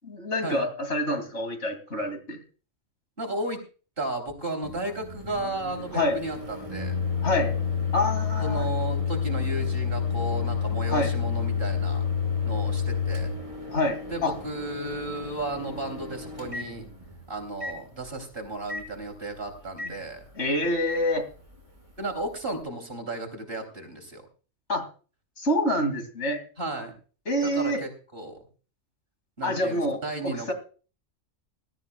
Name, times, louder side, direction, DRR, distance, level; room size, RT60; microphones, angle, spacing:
voice 1, 0.0-2.4 5.9-6.2 7.2-7.5 7.9-8.6 10.9-11.1 13.7-14.3 20.3-21.3 24.7-24.8 25.4-26.4 27.3-27.8 29.4-30.5, left 1 dB, 60° left, 6 dB, 2.9 m, -27 dB
voice 2, 3.2-3.6 4.0-6.9 8.4-12.0 12.5-13.3 14.1-16.9 17.3-20.3 22.0-24.2 26.6-26.9 27.4-28.4 29.4-30.5, right 2 dB, 45° right, 4 dB, 3.6 m, -34 dB
Microwave oven, 4.6-17.2 17.6-17.8 18.7-18.9 19.8-19.9 20.9-21.0, left 6 dB, 25° right, 3.4 m, -30 dB
20.5 x 13.0 x 2.3 m, 0.37 s
omnidirectional pair, 1.3 m